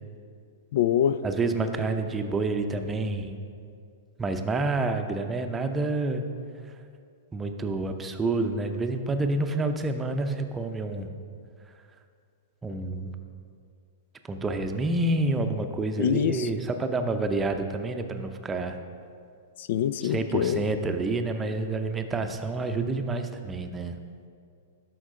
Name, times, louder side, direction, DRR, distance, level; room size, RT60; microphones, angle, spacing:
voice 1, 0.7-1.2 16.0-16.5 19.6-20.6, left 9 dB, 60° left, 14 dB, 0.3 m, -25 dB
voice 2, 1.2-3.4 4.2-6.2 7.3-11.1 12.6-13.1 14.3-18.8 20.0-24.0, right 2 dB, 15° right, 6 dB, 0.6 m, -28 dB
12.5 x 4.6 x 3.7 m, 2.3 s
hypercardioid pair, 110°, 0 cm